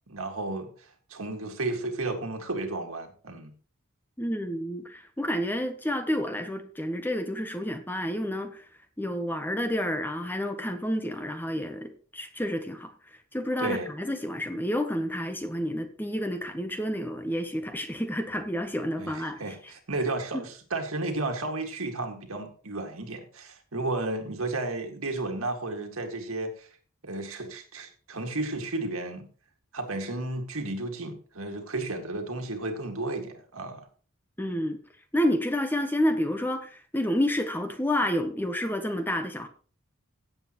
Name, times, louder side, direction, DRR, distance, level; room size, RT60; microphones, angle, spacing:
voice 1, 0.1-3.5 13.6-13.9 19.0-26.7 27.0-29.3 29.7-33.9, right 2 dB, 70° right, 2.1 m, -33 dB
voice 2, 4.2-8.7 9.0-19.7 20.3-20.4 34.4-34.8 35.1-39.5, equal, 10° left, 0.9 m, -30 dB
16.5 x 7.7 x 3.0 m
head